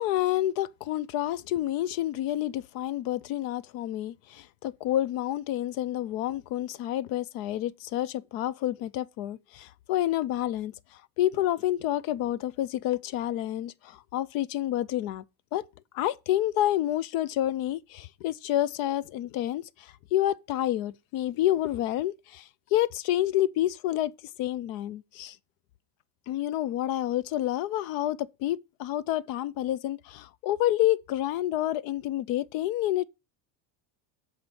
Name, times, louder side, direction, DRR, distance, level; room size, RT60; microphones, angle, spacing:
voice 1, 0.0-10.7 11.2-15.2 15.5-15.6 15.9-24.1 24.4-25.4 26.3-33.1, left 13 dB, 50° left, 0.5 m, -29 dB
7.9 x 4.1 x 6.7 m
cardioid pair, 175°, 46 cm